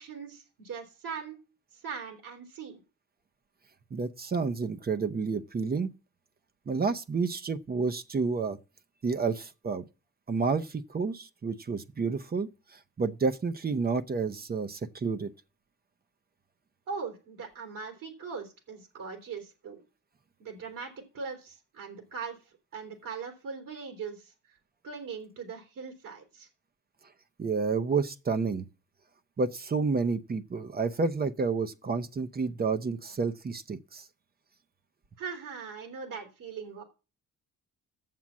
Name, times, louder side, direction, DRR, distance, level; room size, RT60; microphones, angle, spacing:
voice 1, 0.0-1.4 1.8-2.8 16.9-19.8 20.4-22.4 22.7-24.3 24.8-26.5 35.2-36.8, right 5 dB, 70° right, 3.3 m, -40 dB
voice 2, 3.9-5.9 6.7-8.6 9.0-9.8 10.3-15.3 27.4-28.7 29.4-34.0, right 4 dB, 30° right, 0.7 m, -30 dB
7.5 x 7.2 x 7.4 m
cardioid pair, 100°, 34 cm